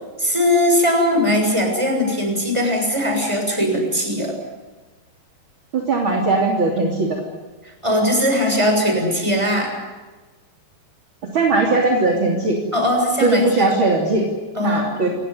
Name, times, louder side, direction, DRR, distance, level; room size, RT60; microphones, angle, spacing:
voice 1, 0.2-4.3 7.8-9.7 12.7-13.7 14.5-15.1, left 1 dB, 5° right, 2 dB, 6.7 m, -19 dB
voice 2, 5.7-7.2 11.3-12.6 13.2-14.2 14.6-15.1, right 3 dB, 30° right, 1 dB, 3.2 m, -19 dB
28.0 x 18.5 x 9.6 m, 1.3 s
omnidirectional pair, 5.2 m